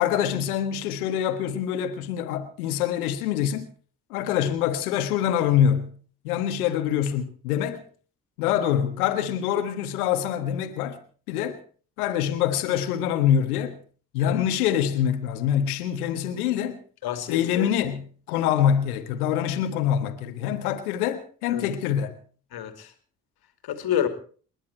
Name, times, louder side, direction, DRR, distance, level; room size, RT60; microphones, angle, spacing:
voice 1, 0.0-3.7 4.1-5.9 6.2-7.8 8.4-11.0 11.3-11.6 12.0-13.8 14.1-16.8 17.3-22.1, left 9 dB, 70° left, 1.6 m, -25 dB
voice 2, 17.0-17.7 21.5-21.6 22.5-22.9 23.6-24.1, left 10 dB, 55° left, 2.8 m, -28 dB
29.5 x 10.0 x 4.5 m
figure-of-eight pair, 45°, 45 cm